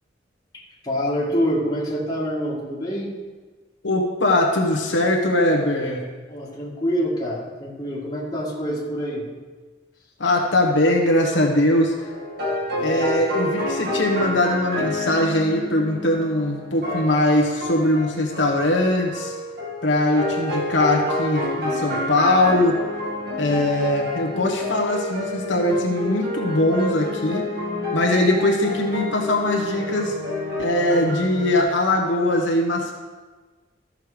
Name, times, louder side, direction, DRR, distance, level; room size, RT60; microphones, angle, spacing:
voice 1, 0.5-3.1 6.3-9.3 12.7-13.1, equal, 20° left, -4 dB, 2.0 m, -26 dB
voice 2, 3.8-6.0 10.2-12.1 12.8-19.3 19.8-22.8 23.4-27.5 27.9-30.2 30.6-32.9, left 1 dB, 70° left, 0 dB, 1.3 m, -21 dB
sound 1, 12.0-31.6, left 1 dB, 55° right, 1.7 m, -29 dB
13.5 x 6.6 x 5.0 m, 1.4 s
head